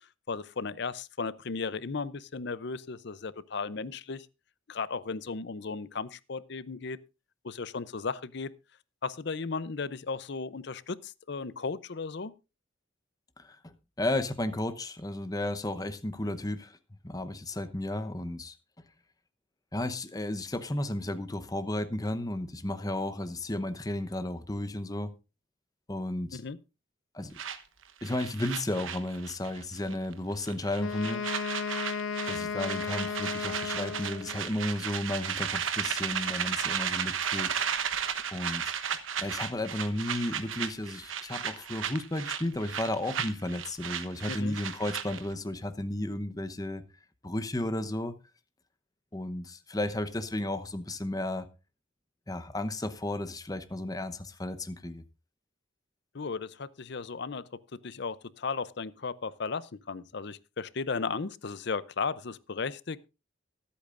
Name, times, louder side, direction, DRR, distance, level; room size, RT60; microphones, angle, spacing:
voice 1, 0.3-4.3 4.7-7.0 7.4-8.5 9.0-12.3 26.3-26.6 44.3-44.6 56.1-57.4 57.8-63.1, left 4 dB, 55° left, 0.6 m, -35 dB
voice 2, 13.4-16.8 17.0-18.5 19.7-25.1 25.9-26.4 27.1-27.4 28.0-31.2 32.3-37.5 38.3-38.7 39.2-46.8 47.2-48.2 49.1-51.5 52.3-55.0, left 1 dB, 20° left, 0.9 m, -33 dB
sound 1, 27.4-29.6 29.9-30.1 30.4-45.3, right 8 dB, 80° right, 1.1 m, -34 dB
Wind instrument woodwind instrument, 30.8-34.5, left 5 dB, 85° left, 0.9 m, -34 dB
23.5 x 8.5 x 2.5 m
head